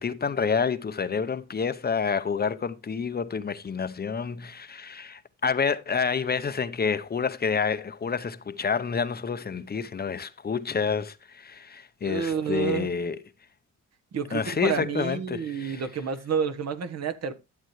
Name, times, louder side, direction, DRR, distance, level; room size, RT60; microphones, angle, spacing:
voice 1, 0.0-13.2 14.3-15.8, left 6 dB, 30° left, 0.8 m, -28 dB
voice 2, 12.0-12.9 14.1-17.3, right 7 dB, 60° right, 1.3 m, -29 dB
11.5 x 7.7 x 3.1 m
cardioid pair, 90°, 30 cm